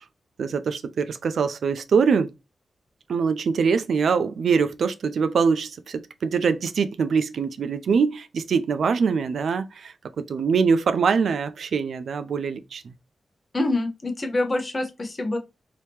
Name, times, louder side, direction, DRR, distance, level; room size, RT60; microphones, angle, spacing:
voice 1, 0.4-2.3 3.1-12.9, right 5 dB, 80° right, 0.3 m, -23 dB
voice 2, 13.5-15.4, left 2 dB, 35° left, 0.8 m, -26 dB
2.9 x 2.7 x 3.4 m
wide cardioid pair, 110°, 0 cm